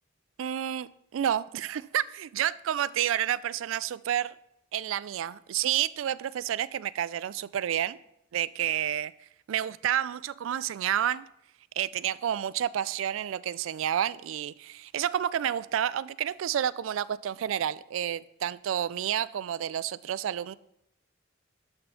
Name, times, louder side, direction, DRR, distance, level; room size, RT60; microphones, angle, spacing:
voice 1, 0.4-4.3 4.7-8.0 8.3-9.1 9.5-11.2 11.8-20.5, right 10 dB, 90° right, 19 dB, 0.3 m, -30 dB
12.0 x 4.3 x 5.7 m, 0.79 s
head